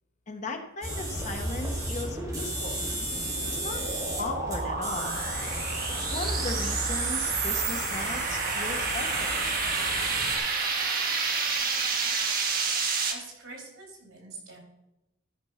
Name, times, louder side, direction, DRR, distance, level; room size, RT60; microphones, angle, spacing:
voice 1, 0.3-2.8 3.6-3.8 4.2-5.2 6.1-9.3, left 2 dB, 35° left, 5 dB, 0.9 m, -37 dB
sound 1, 0.8-10.4, right 1 dB, 20° right, 2.2 m, -33 dB
sound 2, 2.8-13.1, right 4 dB, 45° right, 1.3 m, -30 dB
voice 2, 13.1-14.6, right 3 dB, 80° right, 0 dB, 3.7 m, -45 dB
13.0 x 5.2 x 5.7 m, 0.93 s
head